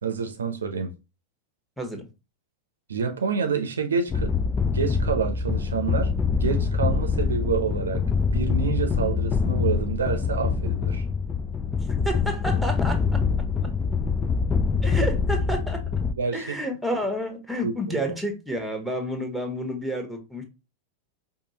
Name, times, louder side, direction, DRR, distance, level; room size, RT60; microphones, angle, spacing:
voice 1, 0.0-0.9 2.9-4.3 4.7-6.1 6.4-8.1 8.3-11.0 16.1-16.5 17.6-18.1, right 5 dB, 70° right, 0.6 m, -28 dB
sound 1, 4.1-16.1, left 5 dB, 20° left, 0.3 m, -25 dB
voice 2, 12.0-13.0 14.8-15.8 16.3-20.4, equal, ahead, 1.0 m, -30 dB
4.9 x 2.3 x 2.8 m
figure-of-eight pair, 90°, 0 cm